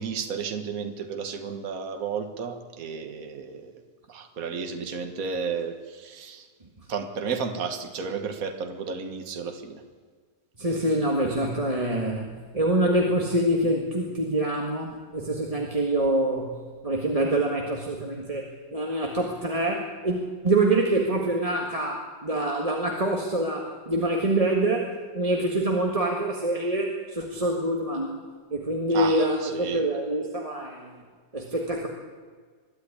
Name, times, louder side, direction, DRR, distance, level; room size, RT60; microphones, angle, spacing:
voice 1, 0.0-3.7 4.1-6.5 6.9-9.8 28.9-29.9, right 6 dB, 55° right, 6 dB, 1.9 m, -32 dB
voice 2, 10.6-16.5 16.8-28.2 28.5-30.9 31.3-31.9, right 1 dB, 20° right, 0 dB, 1.7 m, -25 dB
22.0 x 12.5 x 10.0 m, 1.5 s
omnidirectional pair, 1.9 m